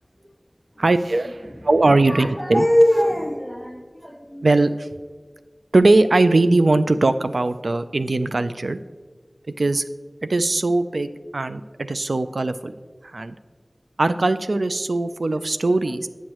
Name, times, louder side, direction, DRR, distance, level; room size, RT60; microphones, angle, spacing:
voice 1, 0.8-2.6 4.4-4.9 5.7-8.8 9.6-9.8 10.2-12.7 13.0-13.4 14.0-16.1, right 2 dB, 85° right, 11 dB, 0.3 m, -20 dB
voice 2, 2.1-4.5, equal, 5° right, 3 dB, 0.9 m, -22 dB
9.2 x 6.3 x 3.0 m, 1.4 s
wide cardioid pair, 40°, 0 cm